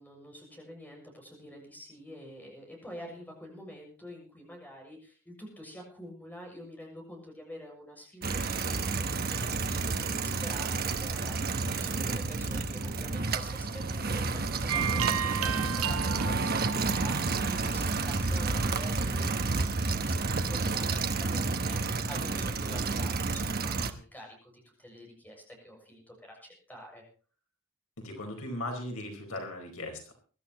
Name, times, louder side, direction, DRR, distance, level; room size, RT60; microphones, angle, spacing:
voice 1, 0.0-27.0, equal, 10° left, 0 dB, 6.8 m, -47 dB
sound 1, 8.2-23.9, right 3 dB, 45° right, 1.1 m, -30 dB
sound 2, 14.7-18.2, right 8 dB, 80° right, 0.8 m, -34 dB
voice 2, 28.0-30.1, left 1 dB, 80° left, 2 dB, 4.5 m, -38 dB
23.0 x 12.5 x 3.0 m, 0.39 s
head